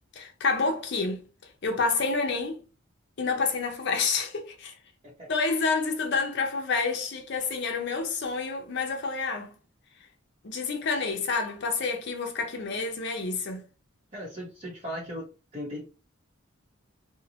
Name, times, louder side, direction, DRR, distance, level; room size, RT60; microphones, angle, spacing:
voice 1, 0.2-1.2 1.6-2.6 3.2-4.7 5.3-9.6 10.4-13.7, left 4 dB, 60° left, 0.6 m, -28 dB
voice 2, 14.1-15.3 15.5-15.9, equal, 30° right, 0.7 m, -37 dB
2.7 x 2.0 x 2.7 m
head